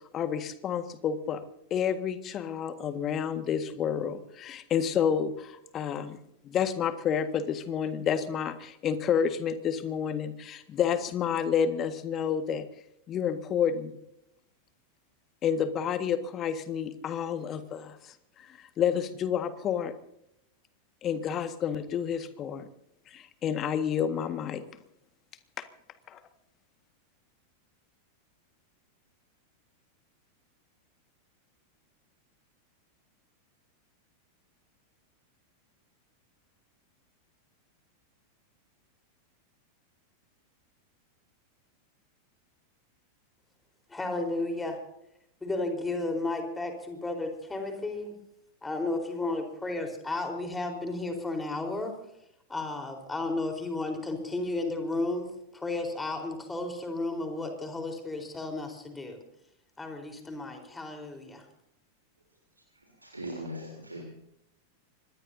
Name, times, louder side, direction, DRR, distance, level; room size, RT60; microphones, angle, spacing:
voice 1, 0.1-1.4 1.7-6.2 6.4-12.7 13.1-14.0 15.4-18.0 18.6-19.9 21.0-22.7 23.1-24.6 25.6-25.7 26.1-26.2, left 8 dB, 30° left, 10 dB, 1.7 m, -29 dB
voice 2, 43.9-44.8 45.4-48.1 48.6-51.9 52.5-59.2 59.8-61.4, left 2 dB, 10° left, 4 dB, 4.2 m, -33 dB
voice 3, 63.0-64.0, equal, 85° right, -1 dB, 3.5 m, -39 dB
25.5 x 20.5 x 2.8 m, 0.79 s
figure-of-eight pair, 90°, 0 cm